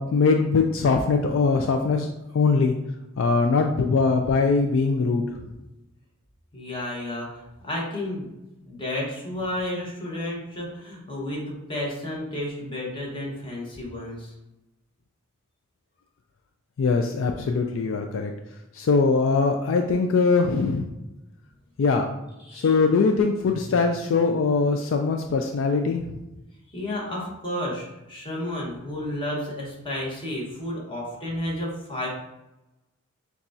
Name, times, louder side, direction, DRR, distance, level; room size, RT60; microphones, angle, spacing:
voice 1, 0.0-2.1 2.3-2.7 3.2-5.4 16.8-18.3 18.7-20.9 21.8-22.1 22.5-26.2, left 4 dB, 65° left, 4 dB, 0.3 m, -22 dB
voice 2, 6.5-8.3 8.6-14.3 22.4-22.7 23.4-23.8 26.7-32.1, left 1 dB, 25° left, -4 dB, 1.2 m, -32 dB
6.9 x 2.3 x 2.6 m, 0.95 s
head